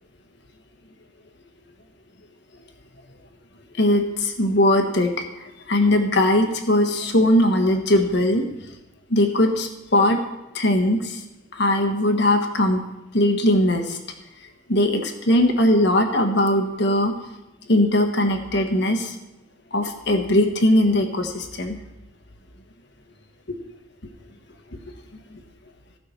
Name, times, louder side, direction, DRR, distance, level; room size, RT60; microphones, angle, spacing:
voice 1, 3.7-8.4 9.1-10.2 10.5-11.2 11.5-12.8 13.1-14.0 14.7-17.1 17.7-19.1 19.7-21.8 25.3-25.4, left 1 dB, 60° left, 5 dB, 1.4 m, -20 dB
15.0 x 6.0 x 6.5 m, 0.94 s
head